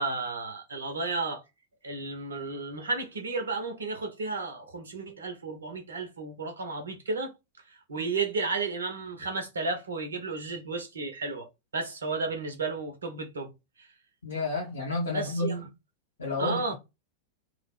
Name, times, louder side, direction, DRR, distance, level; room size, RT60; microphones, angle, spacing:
voice 1, 0.0-1.4 1.8-7.3 7.7-13.5 13.8-13.9 15.1-15.6 16.4-16.7, right 3 dB, 70° right, 0.6 m, -33 dB
voice 2, 14.2-15.7 16.2-16.7, left 3 dB, 70° left, 0.7 m, -31 dB
2.3 x 2.0 x 3.3 m
figure-of-eight pair, 90°, 0 cm